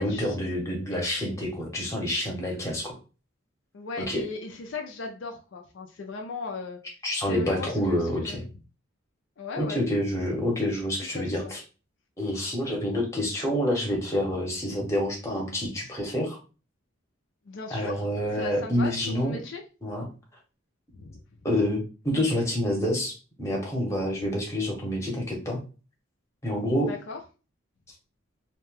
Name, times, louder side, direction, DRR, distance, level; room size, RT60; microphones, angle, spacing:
voice 1, 0.0-3.0 4.0-4.2 7.0-8.4 9.6-11.6 12.2-16.4 17.7-19.4 19.8-20.0 21.4-25.6 26.4-26.9, left 1 dB, 15° left, -1 dB, 0.8 m, -28 dB
voice 2, 3.7-6.8 7.2-8.4 9.4-9.8 11.0-11.5 17.5-18.0 18.3-19.6 20.9-21.2 26.9-27.2, left 3 dB, 65° left, 2 dB, 0.4 m, -37 dB
2.7 x 2.2 x 3.1 m, 0.34 s
head